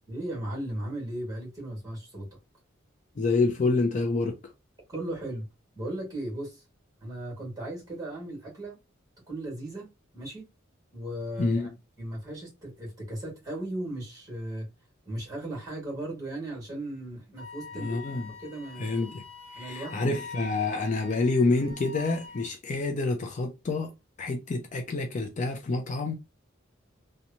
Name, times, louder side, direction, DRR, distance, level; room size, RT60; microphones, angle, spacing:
voice 1, 0.1-2.3 4.9-5.5 5.7-6.6 7.0-8.8 9.3-9.9 10.1-10.4 10.9-11.7 12.0-14.7 15.0-18.0 18.4-18.9 19.5-20.1, right 1 dB, 20° right, 1.4 m, -36 dB
voice 2, 3.2-4.4 11.4-11.7 17.7-18.3 18.8-19.2 19.5-23.9 24.2-26.1, left 3 dB, 40° left, 0.4 m, -27 dB
Wind instrument woodwind instrument, 17.4-22.5, left 3 dB, 75° left, 0.9 m, -44 dB
2.9 x 2.1 x 2.5 m
head